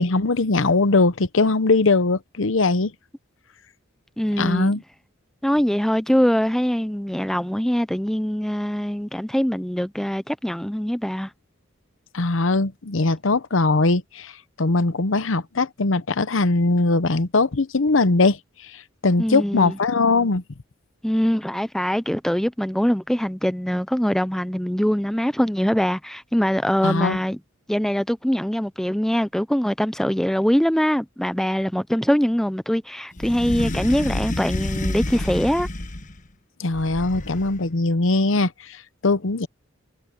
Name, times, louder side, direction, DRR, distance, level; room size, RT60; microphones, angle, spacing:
voice 1, 0.0-2.9 4.4-4.8 12.1-14.3 14.6-18.4 18.7-20.4 26.8-27.2 36.6-39.5, left 3 dB, 65° left, 0.9 m, -20 dB
voice 2, 4.2-4.7 5.4-11.3 19.2-19.8 21.0-27.4 27.7-35.7, equal, ahead, 0.4 m, -23 dB
sound 1, 33.2-36.2 36.7-37.6, left 1 dB, 40° left, 1.3 m, -29 dB
head